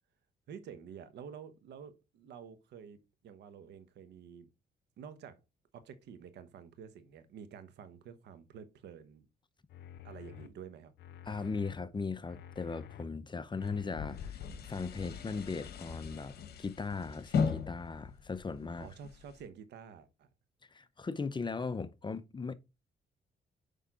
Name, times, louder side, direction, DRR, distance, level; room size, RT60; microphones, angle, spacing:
voice 1, 0.5-4.5 5.0-5.4 5.7-9.3 10.0-10.9 18.8-20.3, right 7 dB, 85° right, 1.1 m, -50 dB
sound 1, 9.7-10.5 11.0-11.8 12.3-13.0 13.5-14.3 14.8-14.9, left 9 dB, 80° left, 0.7 m, -50 dB
voice 2, 11.3-18.9 20.7-22.5, left 4 dB, 25° left, 0.7 m, -38 dB
sound 2, 13.6-19.4, left 6 dB, 65° left, 1.2 m, -38 dB
6.5 x 5.5 x 3.7 m
cardioid pair, 80°, 17 cm